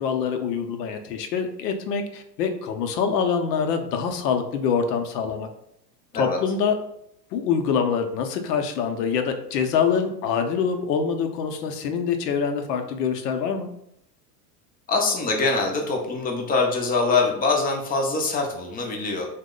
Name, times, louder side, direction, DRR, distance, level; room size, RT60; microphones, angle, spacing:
voice 1, 0.0-5.5 6.1-6.8 7.3-13.7, left 6 dB, 70° left, 6 dB, 0.7 m, -25 dB
voice 2, 14.9-19.3, left 3 dB, 20° left, 2 dB, 0.5 m, -23 dB
2.9 x 2.1 x 3.6 m, 0.77 s
hypercardioid pair, 100°, 49 cm